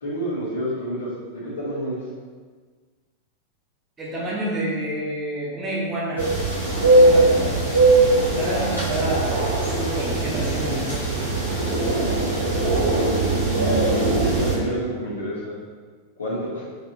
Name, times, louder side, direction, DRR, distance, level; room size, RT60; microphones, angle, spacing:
voice 1, 0.0-2.0 12.6-15.5 16.2-16.6, equal, 70° left, -7 dB, 1.2 m, -29 dB
voice 2, 4.0-6.2 6.9-7.7 8.3-11.0, right 1 dB, 20° right, -5 dB, 0.9 m, -28 dB
sound 1, 6.2-14.5, right 2 dB, 85° left, 1.4 m, -20 dB
4.0 x 2.9 x 2.8 m, 1.5 s
figure-of-eight pair, 90°, 0 cm